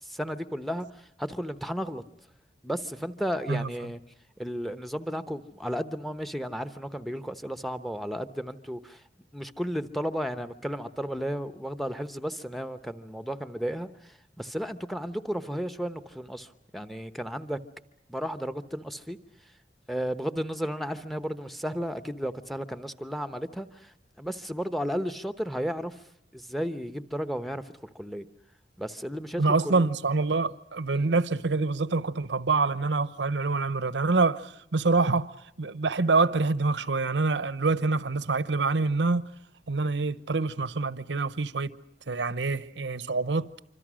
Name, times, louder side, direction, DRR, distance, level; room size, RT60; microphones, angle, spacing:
voice 1, 0.0-2.0 2.6-4.0 4.4-9.0 9.3-17.6 18.1-19.2 19.9-26.0 26.3-28.3 28.8-29.8 30.9-31.1, equal, ahead, 0.9 m, -33 dB
voice 2, 29.4-39.3 39.7-41.7 42.1-43.5, right 3 dB, 80° right, 0.9 m, -26 dB
26.5 x 25.5 x 6.3 m
head